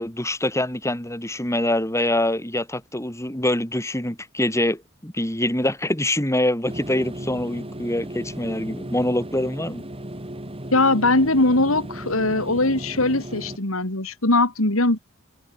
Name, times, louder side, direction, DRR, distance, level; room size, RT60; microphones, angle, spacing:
voice 1, 0.0-9.9, left 1 dB, 15° left, 8.0 m, -25 dB
sound 1, 6.6-13.6, right 1 dB, 25° right, 3.9 m, -36 dB
voice 2, 10.7-15.0, left 2 dB, 75° left, 4.2 m, -20 dB
head